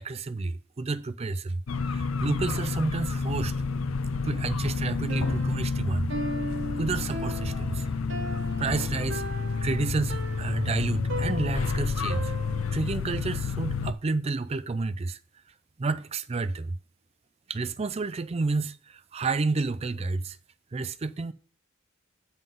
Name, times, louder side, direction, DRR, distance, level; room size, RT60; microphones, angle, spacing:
voice 1, 0.0-3.5 4.2-6.1 6.8-7.9 8.3-9.2 9.6-12.3 12.7-15.2 15.8-16.8 17.5-20.4 20.7-21.3, right 3 dB, 30° right, 0.4 m, -30 dB
sound 1, 1.7-13.9, left 4 dB, 80° left, 0.6 m, -30 dB
Piano, 5.1-13.0, right 1 dB, 60° right, 1.0 m, -38 dB
9.2 x 4.0 x 5.2 m
head